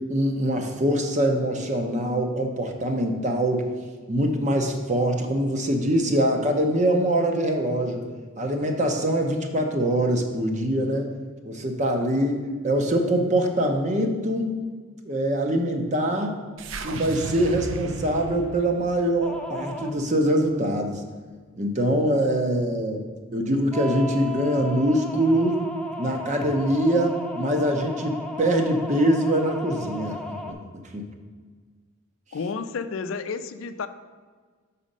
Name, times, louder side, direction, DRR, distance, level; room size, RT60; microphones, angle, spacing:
voice 1, 0.1-3.7 4.1-8.1 8.4-11.1 11.4-14.5 15.0-16.4 16.8-21.0 21.6-23.0 23.3-25.6 26.0-30.6 30.9-31.1, right 1 dB, 35° right, 4 dB, 0.7 m, -23 dB
sound 1, 16.6-20.9, right 3 dB, 75° right, 0.5 m, -36 dB
sound 2, 19.2-20.0 23.7-30.5, left 2 dB, 5° left, 0.4 m, -35 dB
voice 2, 32.3-33.9, left 5 dB, 75° left, 11 dB, 0.4 m, -31 dB
6.2 x 4.2 x 5.3 m, 1.5 s
head